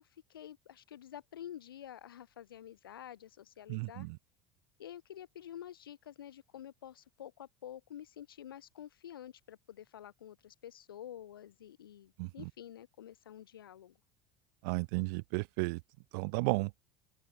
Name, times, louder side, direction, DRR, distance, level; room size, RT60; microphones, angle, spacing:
voice 1, 0.0-4.1 4.8-14.0, left 10 dB, 80° left, 3.4 m, -49 dB
voice 2, 3.7-4.2 12.2-12.5 14.6-15.8 16.1-16.7, right 30 dB, 65° right, 1.1 m, -33 dB
open air
hypercardioid pair, 70°, 12 cm